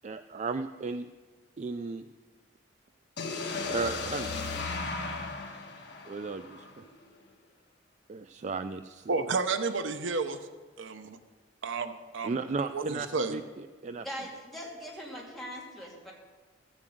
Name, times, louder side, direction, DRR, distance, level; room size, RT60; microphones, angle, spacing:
voice 1, 0.0-1.1 1.6-2.1 3.7-4.3 6.1-6.9 8.1-9.1 12.2-14.0, right 4 dB, 35° right, 9 dB, 0.3 m, -35 dB
sound 1, 3.2-7.1, left 3 dB, 60° left, 1.6 m, -36 dB
voice 2, 9.1-10.4 10.8-11.2 11.6-12.4 12.7-13.4, right 4 dB, 75° right, 9 dB, 0.8 m, -31 dB
voice 3, 14.0-16.1, equal, ahead, -4 dB, 2.7 m, -41 dB
14.0 x 7.4 x 7.8 m, 1.4 s
head